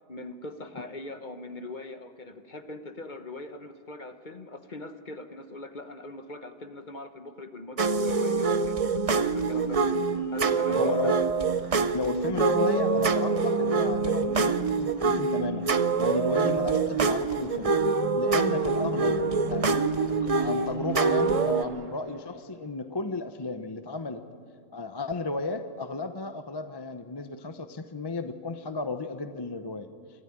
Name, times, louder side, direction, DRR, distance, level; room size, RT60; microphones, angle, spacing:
voice 1, 0.1-10.0 10.3-11.2, left 2 dB, 40° left, 9 dB, 1.1 m, -41 dB
sound 1, 7.8-21.6, right 4 dB, 35° right, 0.7 m, -25 dB
voice 2, 10.5-11.2 11.9-15.6 16.0-17.7 18.2-19.2 19.5-19.7 20.1-24.2 24.7-29.9, left 3 dB, 25° left, 9 dB, 0.7 m, -33 dB
Splash splatter, 18.6-22.6, right 5 dB, 70° right, 1.4 m, -46 dB
25.0 x 13.5 x 10.0 m, 2.1 s
omnidirectional pair, 1.4 m